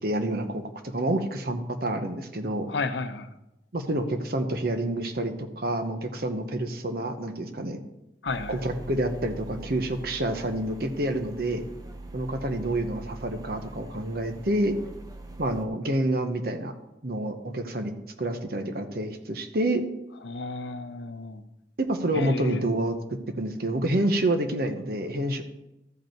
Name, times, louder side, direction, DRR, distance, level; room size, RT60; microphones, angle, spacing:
voice 1, 0.0-2.7 3.7-7.8 8.5-11.6 12.1-14.8 15.4-16.7 17.0-17.9 18.2-19.8 21.8-25.4, right 1 dB, 55° right, 7 dB, 0.9 m, -28 dB
voice 2, 2.7-3.3 8.2-8.6 20.2-21.4 22.1-22.6, left 3 dB, 75° left, 9 dB, 0.7 m, -32 dB
sound 1, 8.3-15.6, right 2 dB, 20° right, 0.6 m, -43 dB
13.5 x 5.3 x 4.5 m, 0.91 s
head